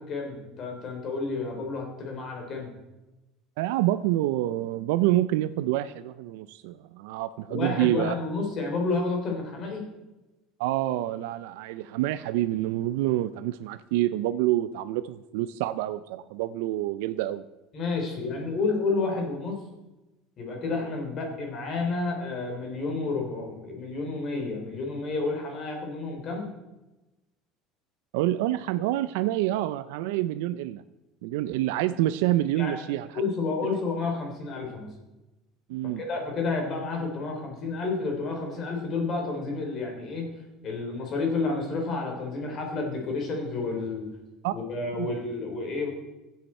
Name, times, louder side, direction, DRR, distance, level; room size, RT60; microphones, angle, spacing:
voice 1, 0.0-2.7 7.5-9.8 17.7-19.6 20.4-26.5 32.6-32.8 33.1-34.9 36.0-40.2 40.6-44.1 44.5-45.9, left 3 dB, 35° left, 2 dB, 3.2 m, -30 dB
voice 2, 3.6-8.1 10.6-17.5 28.1-30.8 31.2-33.1 35.7-36.0 44.4-44.5 45.0-45.1, right 14 dB, 90° right, 13 dB, 0.4 m, -27 dB
15.0 x 8.1 x 4.3 m, 1.0 s
cardioid pair, 165°, 0 cm